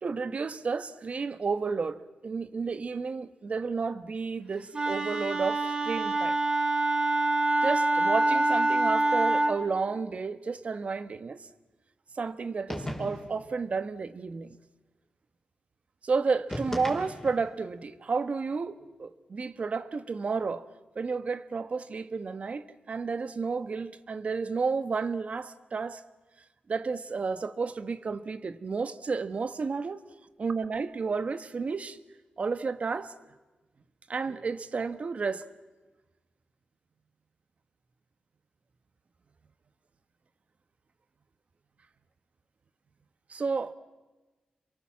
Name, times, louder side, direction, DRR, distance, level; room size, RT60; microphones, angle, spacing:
voice 1, 0.0-6.4 7.6-11.5 12.1-14.6 16.0-20.6 20.9-26.0 26.7-30.0 30.4-32.0 32.4-33.1 34.1-35.5 43.3-43.7, right 4 dB, 50° right, 1.3 m, -31 dB
Wind instrument woodwind instrument, 4.7-9.6, right 2 dB, 30° right, 3.0 m, -25 dB
sound 1, 12.7-13.4 16.5-17.5, left 1 dB, 10° left, 5.0 m, -36 dB
27.5 x 23.5 x 7.6 m
cardioid pair, 75°, 3 cm